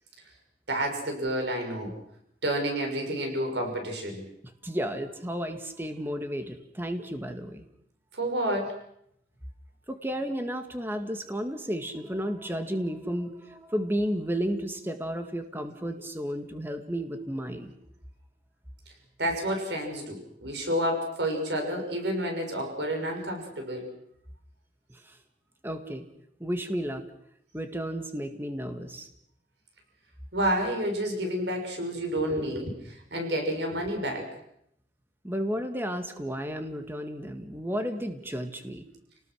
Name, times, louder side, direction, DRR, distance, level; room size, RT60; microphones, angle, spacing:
voice 1, 0.7-1.9 2.4-4.3 8.1-8.8 19.2-23.9 30.3-34.2, right 1 dB, 80° right, 3 dB, 6.7 m, -29 dB
voice 2, 4.6-7.6 9.9-17.7 24.9-25.2 25.6-26.0 26.4-27.0 27.5-29.1 35.2-38.8, equal, 15° right, 7 dB, 2.0 m, -32 dB
29.0 x 19.5 x 6.4 m, 0.73 s
head